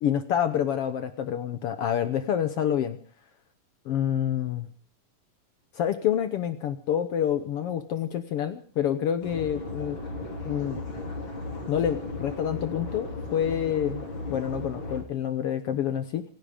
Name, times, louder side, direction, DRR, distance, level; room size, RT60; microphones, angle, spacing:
voice 1, 0.0-3.0 3.9-4.7 5.7-10.0 10.4-10.8 11.7-14.0 14.3-16.2, left 9 dB, 75° left, 10 dB, 1.3 m, -27 dB
sound 1, 9.2-15.0, left 2 dB, 35° left, 3.6 m, -36 dB
27.0 x 10.5 x 5.0 m, 0.43 s
omnidirectional pair, 3.8 m